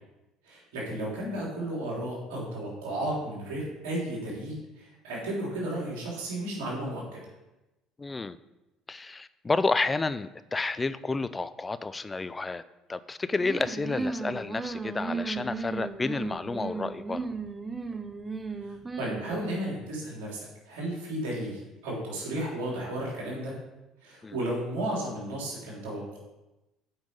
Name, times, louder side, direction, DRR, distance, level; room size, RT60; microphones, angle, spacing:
voice 1, 0.4-7.2 19.0-23.5 24.0-26.2, right 1 dB, 85° right, -4 dB, 3.3 m, -33 dB
voice 2, 8.0-8.4 8.9-12.6 12.9-17.3 24.2-24.4, left 3 dB, 20° left, 15 dB, 0.4 m, -30 dB
sound 1, 13.4-19.8, right 4 dB, 20° right, 0.6 m, -36 dB
8.0 x 5.4 x 5.3 m, 1.0 s
supercardioid pair, 80°, 0 cm